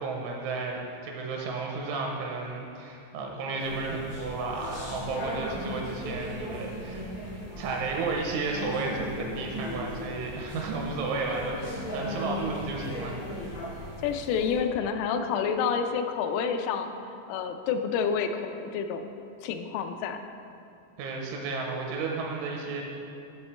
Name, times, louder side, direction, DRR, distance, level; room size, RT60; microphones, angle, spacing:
voice 1, 0.0-7.1 7.6-13.5 21.0-22.8, right 3 dB, 80° right, 0 dB, 3.0 m, -33 dB
sound 1, 3.6-14.6, left 1 dB, 70° left, 1.4 m, -37 dB
voice 2, 14.0-16.9 17.3-19.1 19.4-20.2, left 6 dB, 85° left, 6 dB, 3.2 m, -28 dB
12.5 x 6.2 x 3.2 m, 2.6 s
omnidirectional pair, 5.8 m